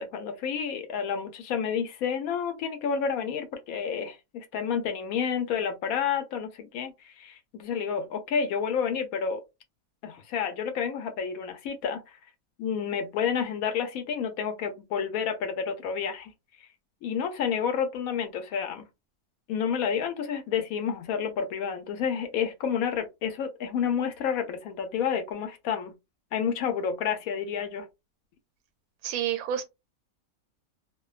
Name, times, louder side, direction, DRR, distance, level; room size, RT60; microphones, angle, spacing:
voice 1, 0.0-9.4 10.0-12.0 12.6-16.3 17.0-18.8 19.5-25.9 26.3-27.9, left 7 dB, 75° left, 1.0 m, -30 dB
voice 2, 29.0-29.7, right 10 dB, 85° right, 1.1 m, -29 dB
2.5 x 2.2 x 2.3 m
omnidirectional pair, 1.5 m